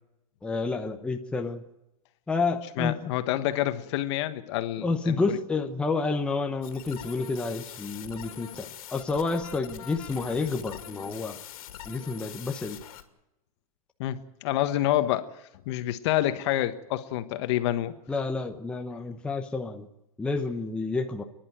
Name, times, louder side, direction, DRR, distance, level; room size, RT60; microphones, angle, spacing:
voice 1, 0.4-1.6 2.3-3.0 4.8-11.4 11.9-12.8 18.1-19.9 20.2-21.2, left 3 dB, 5° left, 3 dB, 0.9 m, -29 dB
voice 2, 2.8-5.2 14.0-15.2 15.7-17.9, left 13 dB, 50° left, 10 dB, 1.4 m, -27 dB
sound 1, 6.6-13.0, left 11 dB, 70° left, 2.5 m, -43 dB
29.0 x 11.0 x 9.2 m, 0.92 s
supercardioid pair, 155°, 19 cm